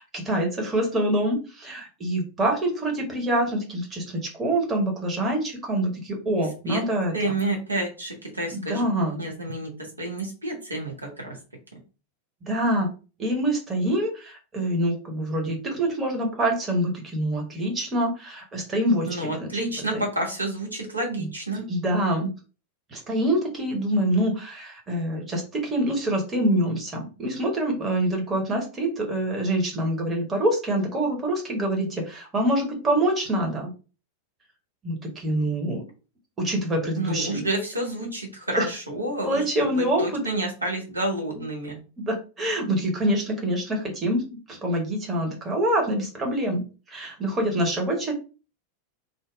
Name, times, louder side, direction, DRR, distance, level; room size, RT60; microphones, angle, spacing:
voice 1, 0.0-7.3 8.5-9.2 12.5-12.9 13.2-19.5 21.2-21.3 21.7-22.3 22.9-33.7 34.8-35.8 36.4-37.5 38.6-38.7 39.2-40.2 42.0-44.2 44.5-46.6 46.9-48.1, right 1 dB, 20° right, 1 dB, 0.9 m, -25 dB
voice 2, 7.1-11.4 19.1-21.7 36.9-41.8, right 2 dB, 80° right, 0 dB, 0.8 m, -29 dB
2.6 x 2.0 x 2.3 m, 0.34 s
figure-of-eight pair, 90°, 0 cm